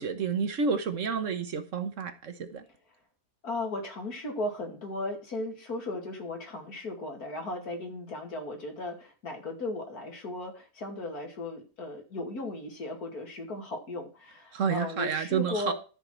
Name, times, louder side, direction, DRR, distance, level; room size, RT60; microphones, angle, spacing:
voice 1, 0.0-2.6 14.5-15.7, right 6 dB, 55° right, 1.4 m, -30 dB
voice 2, 3.4-15.7, left 2 dB, 85° left, 2.9 m, -36 dB
13.0 x 4.7 x 6.0 m
omnidirectional pair, 1.6 m